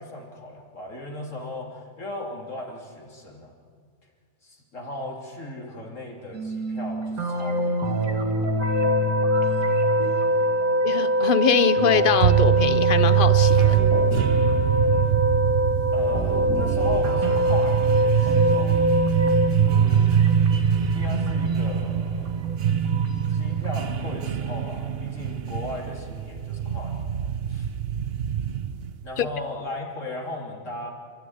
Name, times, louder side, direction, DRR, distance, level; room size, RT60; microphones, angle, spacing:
voice 1, 0.0-3.5 4.4-8.2 15.9-18.8 19.6-20.1 20.9-22.4 23.3-27.1 27.5-27.7 29.0-30.9, left 1 dB, 60° left, 0 dB, 3.6 m, -37 dB
sound 1, 6.3-11.1 11.8-15.5 16.1-23.8, right 2 dB, 80° right, 2.5 m, -29 dB
sound 2, 8.6-19.5, equal, 10° right, 0.8 m, -23 dB
voice 2, 10.8-13.8 29.2-29.3, left 7 dB, 45° left, 14 dB, 0.8 m, -23 dB
sound 3, 12.2-29.0, right 10 dB, 55° right, 0.8 m, -24 dB
29.0 x 13.5 x 9.5 m, 2.1 s
omnidirectional pair, 1.5 m